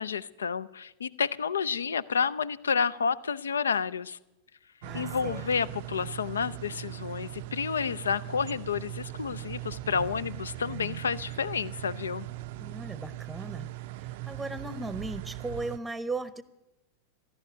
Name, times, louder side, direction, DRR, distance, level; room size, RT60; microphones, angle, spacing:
voice 1, 0.0-4.2 4.9-12.3, left 6 dB, 70° left, 20 dB, 0.5 m, -30 dB
voice 2, 4.8-5.4 12.6-13.7 14.0-16.4, right 2 dB, 5° right, 16 dB, 0.8 m, -37 dB
sound 1, 4.8-15.8, right 15 dB, 50° right, 0.5 m, -40 dB
14.5 x 11.5 x 8.7 m, 0.98 s
figure-of-eight pair, 90°, 0 cm